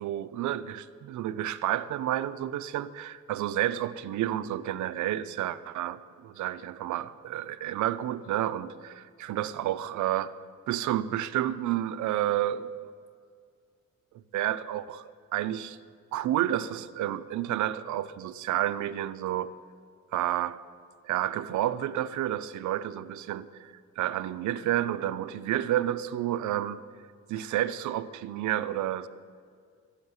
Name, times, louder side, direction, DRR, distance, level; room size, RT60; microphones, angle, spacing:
voice 1, 0.0-10.3 10.7-12.7 14.3-15.8 16.1-19.5 20.1-20.6 21.0-26.8 27.3-29.1, right 12 dB, 75° right, 16 dB, 0.5 m, -30 dB
13.5 x 6.4 x 9.5 m, 2.2 s
cardioid pair, 90°, 30 cm